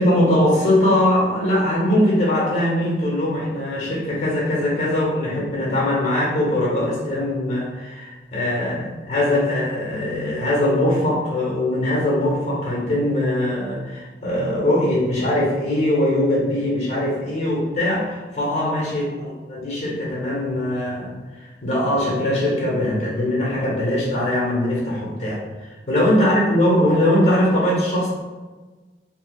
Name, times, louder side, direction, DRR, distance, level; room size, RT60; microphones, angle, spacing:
voice 1, 0.0-21.1 21.4-28.1, left 1 dB, 40° left, -5 dB, 1.0 m, -21 dB
4.2 x 2.0 x 2.3 m, 1.3 s
head